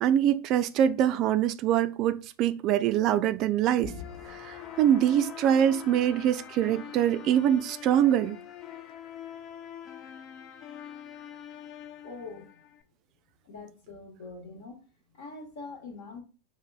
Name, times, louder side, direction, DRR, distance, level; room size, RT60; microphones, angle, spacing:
voice 1, 0.0-3.9 4.3-8.4, right 10 dB, 45° right, 0.3 m, -24 dB
sound 1, 3.8-12.8, left 9 dB, 40° left, 0.4 m, -44 dB
voice 2, 12.0-12.6 13.4-14.8 15.1-16.2, left 3 dB, 65° left, 1.2 m, -43 dB
5.8 x 2.1 x 2.3 m
hypercardioid pair, 90°, 0 cm